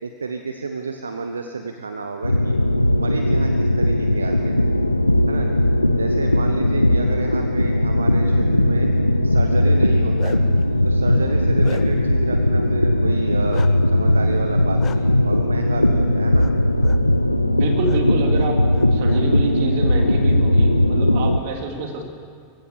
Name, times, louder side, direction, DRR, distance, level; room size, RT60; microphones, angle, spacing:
voice 1, 0.0-2.6 2.9-4.6 5.3-5.6 6.0-8.9 9.2-10.4 10.8-16.5, right 4 dB, 75° right, 6 dB, 1.0 m, -30 dB
sound 1, 2.2-21.4, left 1 dB, 85° left, 0.6 m, -18 dB
Bark, 9.8-10.6 11.1-12.1 13.5-13.7 14.8-15.0 16.4-16.5 16.8-17.0 17.8-18.0 18.4-19.2, left 9 dB, 30° left, 1.2 m, -38 dB
voice 2, 17.4-22.0, right 4 dB, 50° right, 3 dB, 3.1 m, -27 dB
23.5 x 16.0 x 7.0 m, 2.2 s
figure-of-eight pair, 90°, 0 cm